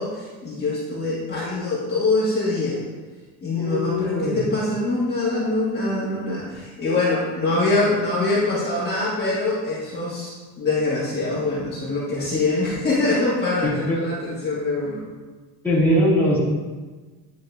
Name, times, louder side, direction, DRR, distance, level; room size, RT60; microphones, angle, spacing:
voice 1, 0.0-2.8 3.4-15.0, left 2 dB, 25° left, -9 dB, 1.7 m, -24 dB
voice 2, 3.5-4.4 13.6-14.0 15.6-16.4, equal, 5° left, -8 dB, 2.0 m, -21 dB
10.0 x 4.1 x 2.6 m, 1.3 s
cardioid pair, 120°, 39 cm